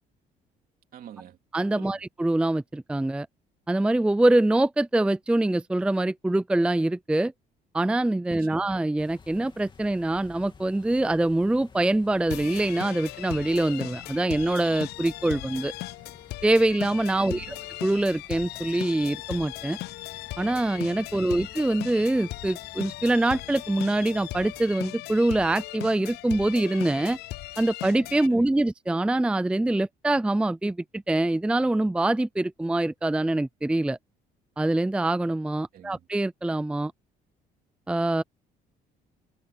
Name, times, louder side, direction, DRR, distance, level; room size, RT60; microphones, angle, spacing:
voice 1, 0.9-1.4 1.7-2.0 8.3-8.7 17.2-17.6 21.1-21.5 28.3-28.6 35.7-36.1, right 10 dB, 60° right, 3.0 m, -46 dB
voice 2, 1.5-3.3 3.7-7.3 7.7-15.7 16.4-17.5 17.8-19.8 20.4-27.2 27.6-34.0 34.6-36.9 37.9-38.2, right 2 dB, 5° right, 0.5 m, -24 dB
sound 1, 9.0-24.8, left 5 dB, 30° left, 3.0 m, -52 dB
sound 2, 12.3-28.3, left 18 dB, 75° left, 0.4 m, -38 dB
cardioid pair, 110°, 17 cm